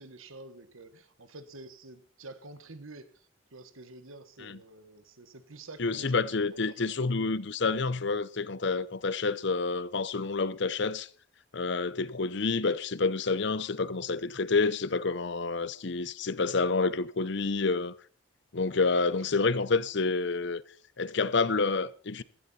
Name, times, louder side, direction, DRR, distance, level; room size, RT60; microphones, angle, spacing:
voice 1, 0.0-7.1, right 2 dB, 80° right, 1.4 m, -49 dB
voice 2, 5.8-11.1 11.5-17.9 18.5-20.6 21.0-22.2, left 4 dB, 55° left, 0.7 m, -28 dB
16.0 x 14.0 x 4.3 m
head